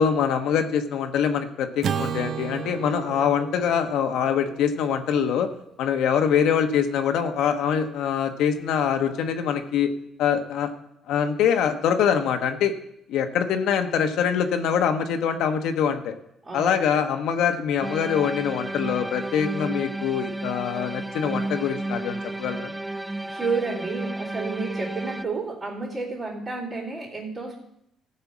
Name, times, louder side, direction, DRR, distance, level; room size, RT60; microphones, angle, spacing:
voice 1, 0.0-5.5 5.8-9.9 10.2-10.7 11.1-12.7 13.1-16.1 16.5-22.7, left 7 dB, 80° left, 5 dB, 1.1 m, -24 dB
Acoustic guitar / Strum, 1.8-6.2, right 8 dB, 60° right, 0.5 m, -34 dB
voice 2, 16.4-17.0 23.3-27.6, right 4 dB, 25° right, -9 dB, 3.2 m, -31 dB
sound 1, 17.8-25.2, right 2 dB, 10° right, 0.5 m, -32 dB
14.5 x 5.6 x 7.3 m, 0.77 s
cardioid pair, 110°, 0 cm